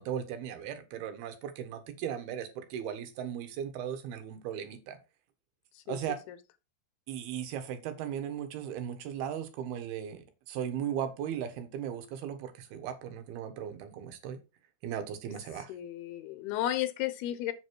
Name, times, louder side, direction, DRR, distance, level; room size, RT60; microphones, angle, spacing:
voice 1, 0.0-5.0 5.9-6.2 7.1-14.4 14.8-15.7, right 9 dB, 85° right, 3.4 m, -37 dB
voice 2, 15.7-17.5, left 13 dB, 90° left, 3.0 m, -33 dB
8.1 x 6.6 x 4.6 m
omnidirectional pair, 4.4 m